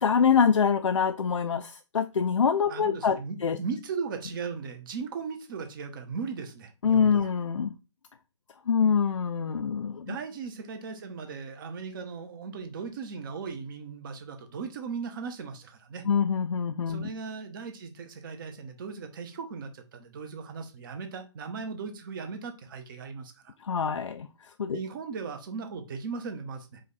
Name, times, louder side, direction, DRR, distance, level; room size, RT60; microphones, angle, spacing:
voice 1, 0.0-3.6 6.8-7.7 8.7-10.1 16.1-17.1 23.6-24.3 24.6-24.8, left 6 dB, 80° left, 0.4 m, -25 dB
voice 2, 2.7-7.3 10.0-16.1 16.9-23.5 24.7-26.8, right 5 dB, 45° right, 0.9 m, -37 dB
4.9 x 2.4 x 4.0 m
figure-of-eight pair, 130°, 16 cm